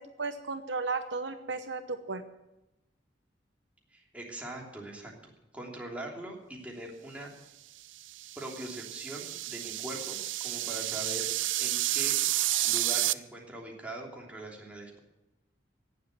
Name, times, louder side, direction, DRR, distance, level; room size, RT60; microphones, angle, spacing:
voice 1, 0.2-2.2, right 4 dB, 70° right, 8 dB, 1.0 m, -34 dB
voice 2, 3.9-5.1 5.5-7.3 8.4-10.2 10.4-11.3 11.6-12.2 12.6-15.0, right 1 dB, 10° right, -2 dB, 3.1 m, -41 dB
sound 1, 8.0-13.1, right 15 dB, 90° right, 0.5 m, -30 dB
17.5 x 7.6 x 8.1 m, 0.93 s
head